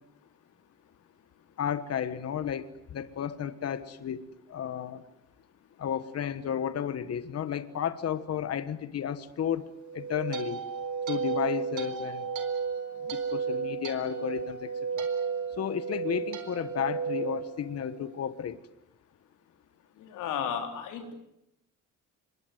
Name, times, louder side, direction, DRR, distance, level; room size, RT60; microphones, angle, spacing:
voice 1, 1.6-5.0 5.8-10.6 11.1-12.3 13.0-15.1 15.6-18.6, left 8 dB, 55° left, 12 dB, 1.4 m, -33 dB
sound 1, 9.8-18.2, right 6 dB, 75° right, 4.3 m, -33 dB
voice 2, 20.0-21.1, left 8 dB, 90° left, 5 dB, 4.0 m, -34 dB
26.5 x 22.0 x 9.3 m, 0.85 s
cardioid pair, 90°, 30 cm